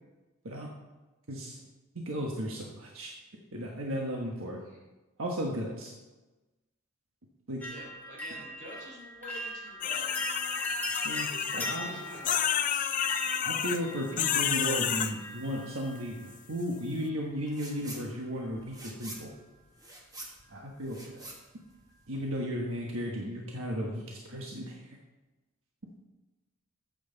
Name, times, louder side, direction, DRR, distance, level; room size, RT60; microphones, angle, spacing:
voice 1, 1.3-1.6 1.9-3.1 3.5-4.6 5.2-5.9 7.5-7.7 11.0-11.3 11.7-12.2 13.4-19.3 20.5-21.2 22.1-24.9, equal, 65° right, -1 dB, 1.3 m, -35 dB
sound 1, 7.6-16.5 17.5-18.0 18.3-18.8 19.1-19.2, equal, 10° left, 2.0 m, -40 dB
voice 2, 7.7-10.1 11.3-12.9, equal, 35° right, -3 dB, 3.5 m, -47 dB
sound 2, 9.8-11.8 12.2-13.8 14.2-15.1, left 9 dB, 40° left, 0.4 m, -30 dB
sound 3, 17.5-18.1 18.4-22.3, right 1 dB, 15° right, 1.6 m, -46 dB
14.0 x 8.0 x 4.0 m, 1.2 s
head